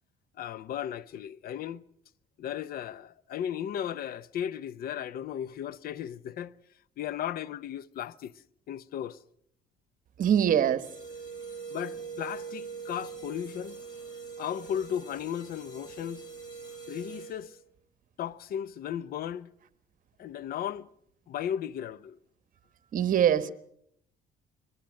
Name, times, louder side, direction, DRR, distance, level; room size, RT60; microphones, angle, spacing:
voice 1, 0.4-1.8 2.4-6.5 7.0-8.3 8.7-9.2 11.7-13.8 14.4-16.2 16.9-17.6 18.2-19.5 20.2-20.9 21.3-22.2, left 10 dB, 60° left, 0.7 m, -35 dB
voice 2, 10.2-10.9 22.9-23.5, right 9 dB, 50° right, 1.2 m, -23 dB
sound 1, 10.8-17.6, right 5 dB, 25° left, 7.8 m, -43 dB
22.5 x 20.0 x 6.4 m
cardioid pair, 110°, 17 cm